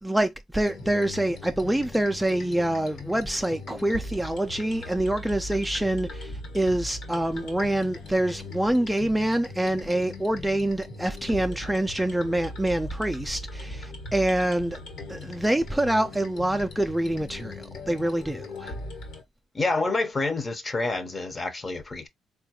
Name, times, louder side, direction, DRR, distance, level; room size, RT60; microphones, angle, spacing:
voice 1, 0.0-14.8 15.1-18.7, right 1 dB, 5° right, 0.4 m, -26 dB
sound 1, 0.6-19.2, left 2 dB, 75° left, 1.2 m, -39 dB
voice 2, 19.5-22.1, left 3 dB, 30° left, 0.7 m, -28 dB
3.9 x 2.3 x 2.8 m
cardioid pair, 90°, 0 cm